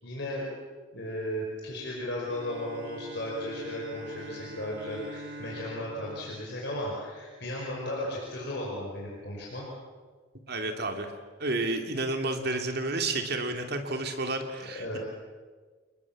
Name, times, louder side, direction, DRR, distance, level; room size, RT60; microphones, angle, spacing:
voice 1, 0.0-0.4 0.9-9.7 14.8-15.0, left 1 dB, 55° left, -3 dB, 5.5 m, -35 dB
Bowed string instrument, 2.2-7.7, right 1 dB, 75° right, 2.0 m, -45 dB
voice 2, 10.5-11.1 11.4-15.0, right 2 dB, 50° right, 5 dB, 2.9 m, -31 dB
29.0 x 21.0 x 7.4 m, 1.5 s
head